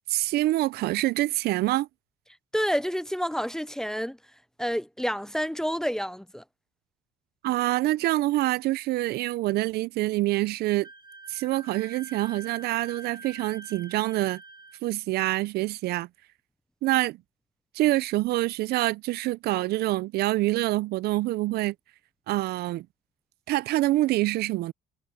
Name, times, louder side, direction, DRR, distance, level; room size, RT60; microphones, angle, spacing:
voice 1, 0.1-1.9 7.4-10.9 11.3-14.4 14.8-16.1 16.8-17.2 17.7-21.7 22.3-22.9 23.5-24.7, right 17 dB, 70° right, 0.4 m, -26 dB
voice 2, 2.5-4.2 4.6-6.4, equal, 5° left, 0.5 m, -29 dB
Wind instrument woodwind instrument, 10.8-14.8, right 3 dB, 25° right, 1.2 m, -46 dB
cardioid pair, 110°, 17 cm